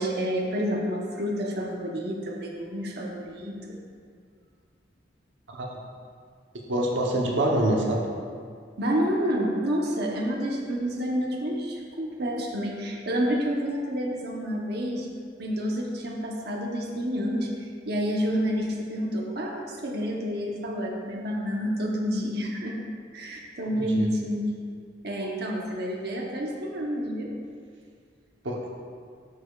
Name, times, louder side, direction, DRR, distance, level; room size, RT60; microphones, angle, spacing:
voice 1, 0.0-3.8 6.7-7.0 8.8-15.1 15.4-22.8 23.1-24.5 25.0-27.3, equal, 60° right, -1 dB, 0.9 m, -29 dB
voice 2, 6.7-8.1 23.8-24.1 28.4-28.6, right 1 dB, 85° right, -1 dB, 0.9 m, -25 dB
11.5 x 6.5 x 2.4 m, 2.1 s
head